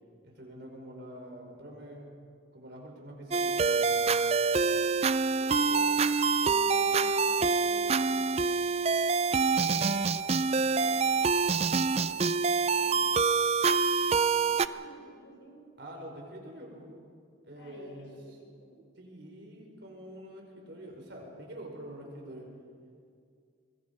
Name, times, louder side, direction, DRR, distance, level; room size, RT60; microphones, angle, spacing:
voice 1, 0.2-2.1 2.5-4.1 15.8-16.9 17.4-18.1 19.0-22.5, right 1 dB, 60° right, 0 dB, 5.1 m, -45 dB
sound 1, 3.3-14.7, right 4 dB, 30° right, 0.4 m, -26 dB
voice 2, 5.4-6.0 6.4-8.5 9.6-11.2 11.8-12.2 12.5-13.2 14.1-15.6 17.6-18.8, equal, 65° left, 1 dB, 4.9 m, -50 dB
24.5 x 21.0 x 5.3 m, 2.2 s
head